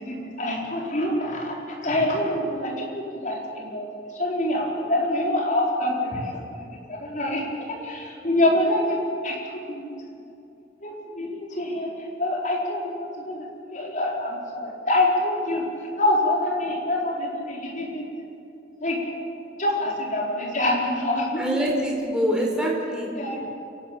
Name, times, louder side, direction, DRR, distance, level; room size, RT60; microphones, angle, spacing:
voice 1, 0.0-3.9 4.1-9.4 9.7-9.9 10.8-15.7 16.0-18.0 18.8-19.0 19.6-21.6 23.1-23.4, left 1 dB, 45° left, -2 dB, 4.6 m, -26 dB
voice 2, 21.4-23.1, equal, 5° right, -2 dB, 4.6 m, -24 dB
29.0 x 12.5 x 8.6 m, 2.7 s
head